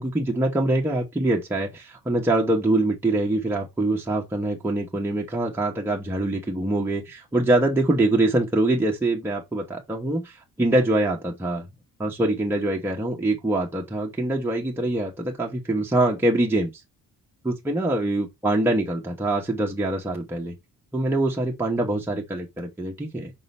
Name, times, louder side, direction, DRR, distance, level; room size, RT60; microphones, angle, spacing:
voice 1, 0.0-11.7 12.0-16.7 17.4-20.5 20.9-23.3, right 2 dB, 5° right, 1.1 m, -24 dB
5.4 x 3.8 x 5.4 m
cardioid pair, 165°, 35 cm